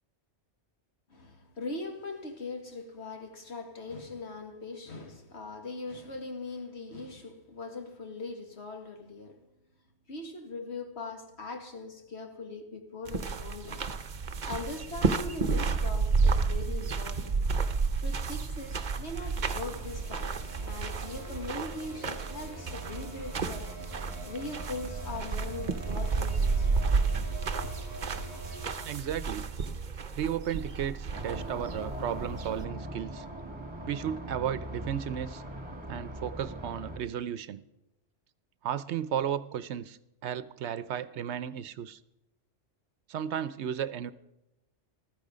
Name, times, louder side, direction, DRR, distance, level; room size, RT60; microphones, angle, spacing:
voice 1, 1.1-9.4 10.1-14.0 14.5-17.3 18.0-23.7 24.3-26.7 27.6-27.7, left 3 dB, 65° left, 2.1 m, -41 dB
sound 1, 13.1-32.7, right 4 dB, 45° right, 0.9 m, -31 dB
sound 2, 19.2-28.7, right 1 dB, 15° left, 4.9 m, -44 dB
voice 2, 28.8-29.5 30.2-33.2 33.9-35.4 35.9-37.6 38.6-42.0 43.1-44.1, right 9 dB, 70° right, 0.9 m, -34 dB
sound 3, 31.1-37.0, right 1 dB, 25° right, 1.8 m, -40 dB
15.0 x 13.5 x 5.0 m
omnidirectional pair, 1.2 m